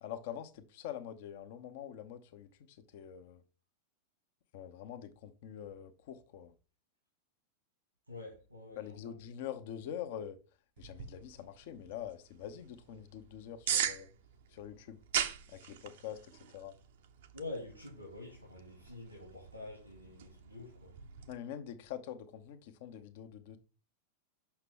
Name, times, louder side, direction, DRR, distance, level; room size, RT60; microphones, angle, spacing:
voice 1, 0.0-3.4 4.5-6.5 8.8-10.4 10.8-14.1 14.5-15.0 15.5-16.8 21.3-23.6, left 10 dB, 50° left, 0.8 m, -45 dB
voice 2, 8.1-9.1 17.3-20.9, left 2 dB, 90° right, 2.3 m, -47 dB
sound 1, 10.8-21.3, right 9 dB, 55° right, 0.7 m, -41 dB
6.8 x 5.8 x 3.6 m
figure-of-eight pair, 90°, 0 cm